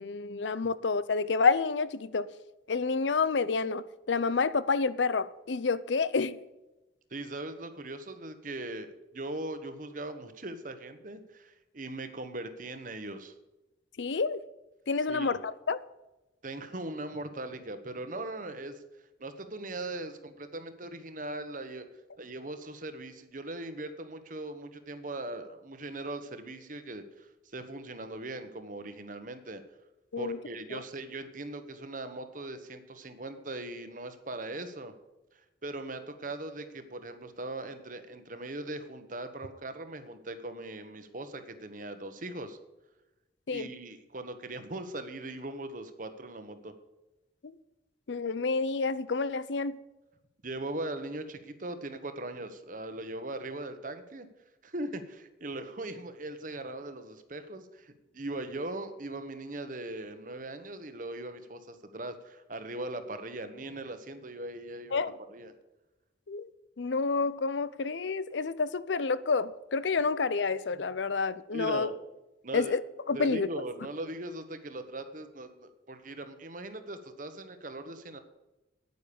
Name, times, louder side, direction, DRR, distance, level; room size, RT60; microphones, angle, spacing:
voice 1, 0.0-2.3 2.7-6.4 14.0-14.4 14.9-15.8 30.1-30.4 30.7-30.8 43.5-43.7 47.4-47.6 48.1-49.8 64.9-65.1 66.3-66.5 66.8-71.9 72.5-72.8 73.1-73.5, left 4 dB, 90° left, 0.6 m, -29 dB
voice 2, 7.1-13.3 15.1-15.4 16.4-18.8 19.2-21.9 22.2-29.6 30.2-34.9 35.6-42.6 43.5-46.7 50.4-54.3 54.6-65.5 71.5-71.9 72.4-72.7 73.1-78.2, right 2 dB, 50° right, 1.3 m, -40 dB
9.6 x 9.5 x 7.0 m
head